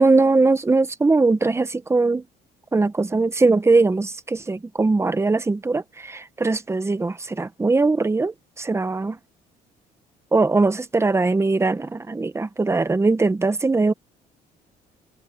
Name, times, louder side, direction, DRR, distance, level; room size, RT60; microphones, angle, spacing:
voice 1, 0.0-2.2 2.7-9.2 10.3-13.9, right 3 dB, 15° right, 1.2 m, -20 dB
cardioid pair, 110°, 17 cm